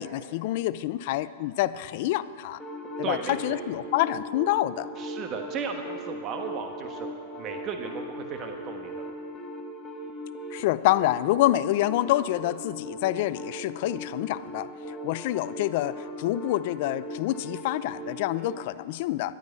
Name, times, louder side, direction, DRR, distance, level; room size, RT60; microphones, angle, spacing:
voice 1, 0.0-2.6 3.0-4.9 10.5-19.3, left 15 dB, 55° left, 16 dB, 0.5 m, -27 dB
sound 1, 2.6-18.6, equal, 10° left, 1.6 m, -39 dB
voice 2, 3.0-3.6 5.0-7.1 7.4-9.1, right 6 dB, 35° right, 4 dB, 1.3 m, -35 dB
11.5 x 9.5 x 9.2 m, 2.3 s
hypercardioid pair, 130°, 0 cm